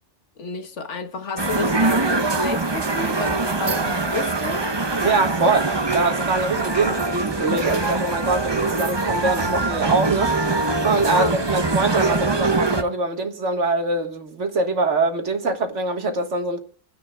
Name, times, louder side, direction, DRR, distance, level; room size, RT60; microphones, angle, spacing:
voice 1, 0.4-4.9 11.1-11.6, left 3 dB, 80° left, 1.6 m, -31 dB
sound 1, 1.4-12.8, right 3 dB, 25° right, 0.9 m, -23 dB
voice 2, 5.0-10.5 10.8-16.6, right 3 dB, 80° right, 2.0 m, -23 dB
28.5 x 10.0 x 2.3 m
omnidirectional pair, 1.2 m